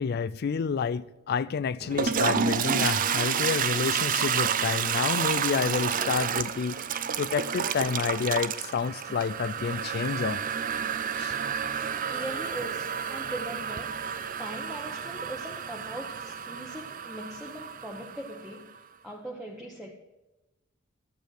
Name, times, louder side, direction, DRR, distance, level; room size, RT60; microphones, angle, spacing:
voice 1, 0.0-6.8 7.2-10.4 11.2-11.4, left 6 dB, 50° left, 0.4 m, -29 dB
Toilet flush, 1.8-18.6, right 7 dB, 40° right, 0.5 m, -30 dB
voice 2, 11.8-14.0 14.4-18.8 19.0-19.9, right 1 dB, ahead, 1.0 m, -40 dB
12.0 x 8.3 x 6.3 m
head